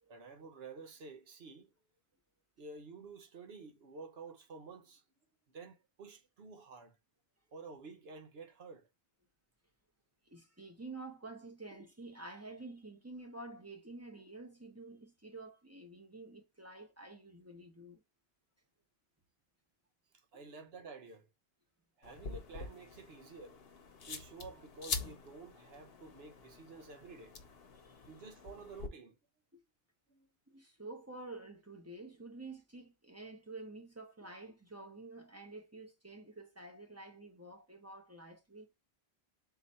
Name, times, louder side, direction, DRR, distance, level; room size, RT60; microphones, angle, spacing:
voice 1, 0.1-1.7 2.6-5.0 5.5-7.0 7.5-8.9 20.3-21.3 22.0-23.6 24.1-27.4 28.1-29.2 30.1-30.3, right 4 dB, 75° right, 1.1 m, -51 dB
voice 2, 10.2-18.0 27.7-28.1 29.5-29.6 30.5-38.7, right 2 dB, 15° right, 0.8 m, -49 dB
sound 1, 22.0-28.9, left 5 dB, 70° left, 1.0 m, -45 dB
4.0 x 2.6 x 4.1 m
omnidirectional pair, 1.1 m